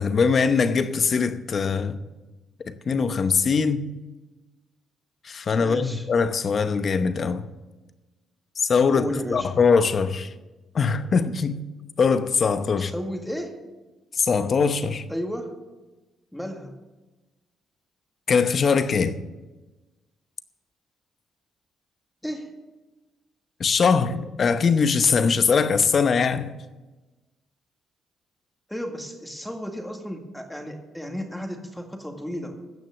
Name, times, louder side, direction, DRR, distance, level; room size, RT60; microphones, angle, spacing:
voice 1, 0.0-2.0 2.6-3.9 5.2-7.5 8.6-10.3 10.7-11.6 12.0-12.9 14.1-15.0 18.3-19.2 23.6-26.5, left 5 dB, 45° left, 0.9 m, -22 dB
voice 2, 5.6-6.1 8.9-9.5 12.8-13.6 15.1-15.5 16.3-16.8 22.2-22.5 28.7-32.6, equal, 5° left, 2.0 m, -33 dB
16.0 x 6.2 x 7.3 m
cardioid pair, 90°, 0 cm